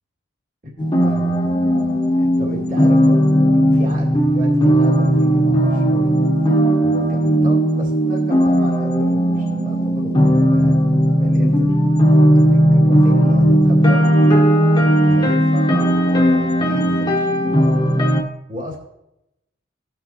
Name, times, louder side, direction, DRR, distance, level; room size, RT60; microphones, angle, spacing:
voice 1, 0.6-6.1 6.8-10.8 11.2-11.8 12.3-14.4 15.0-17.8 18.5-18.8, left 1 dB, 45° right, -1 dB, 2.2 m, -34 dB
sound 1, 0.8-18.2, equal, 20° left, 1.0 m, -16 dB
17.0 x 6.0 x 2.9 m, 0.87 s
head